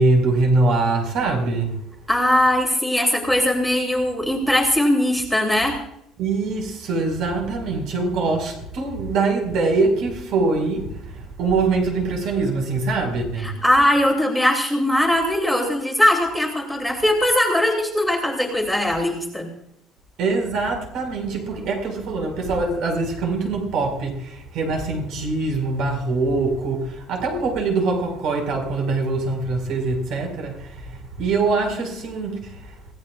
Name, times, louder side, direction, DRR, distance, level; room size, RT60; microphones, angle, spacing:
voice 1, 0.0-1.8 6.2-13.5 20.2-32.7, right 3 dB, 55° right, 5.1 m, -23 dB
voice 2, 2.1-5.8 13.4-19.5, left 1 dB, ahead, 2.7 m, -20 dB
26.5 x 17.0 x 2.5 m
cardioid pair, 175°, 0 cm